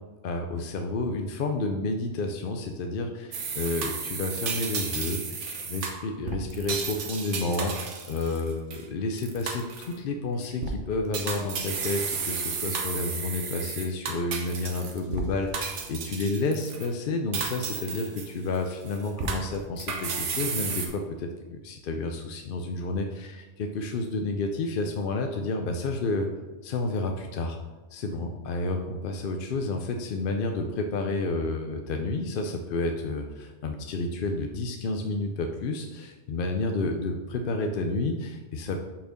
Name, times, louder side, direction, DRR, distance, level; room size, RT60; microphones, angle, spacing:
voice 1, 0.2-26.3 26.6-27.6 27.9-38.8, left 2 dB, 55° left, 4 dB, 0.7 m, -30 dB
sound 1, 3.3-8.8 9.2-10.0 10.4-10.7 11.1-15.2 15.5-16.9 17.3-18.6 18.9-20.9, right 5 dB, 80° right, 1.2 m, -33 dB
5.6 x 4.4 x 6.3 m, 1.3 s
omnidirectional pair, 1.2 m